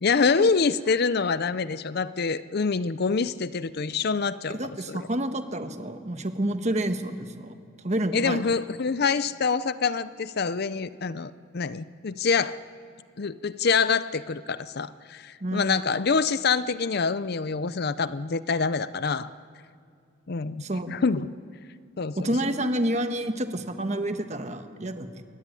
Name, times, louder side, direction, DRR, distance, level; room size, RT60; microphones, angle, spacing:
voice 1, 0.0-5.1 8.1-12.6 13.2-19.3 20.3-21.3 22.0-22.3, left 5 dB, 50° left, 15 dB, 0.5 m, -26 dB
voice 2, 4.5-7.5 7.8-8.4 15.4-15.7 20.6-21.0 22.2-25.2, right 1 dB, 35° right, 7 dB, 1.3 m, -29 dB
22.5 x 17.5 x 9.8 m, 2.3 s
head